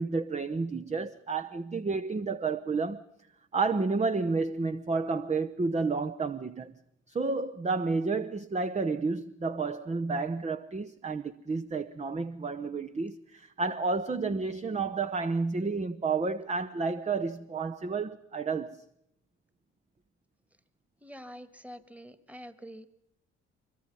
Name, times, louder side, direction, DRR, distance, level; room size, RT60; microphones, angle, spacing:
voice 1, 0.0-3.0 3.5-6.7 7.1-18.8, right 4 dB, 20° right, 0.9 m, -31 dB
voice 2, 21.0-22.9, equal, 5° right, 1.8 m, -46 dB
24.5 x 22.5 x 5.6 m
hypercardioid pair, 45°, 34 cm